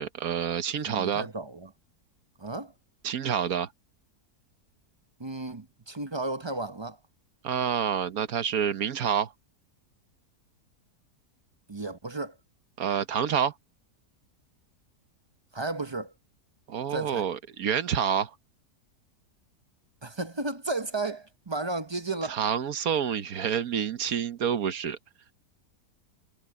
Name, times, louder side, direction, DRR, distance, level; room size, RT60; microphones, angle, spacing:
voice 1, 0.0-1.3 3.0-3.7 7.4-9.3 12.8-13.5 16.7-18.3 22.3-25.0, right 8 dB, 65° right, 1.4 m, -28 dB
voice 2, 0.9-1.7 2.4-2.7 5.2-7.0 11.7-12.3 15.5-16.1 16.9-17.2 20.0-22.4, right 2 dB, 25° right, 0.6 m, -33 dB
omnidirectional pair, 1.7 m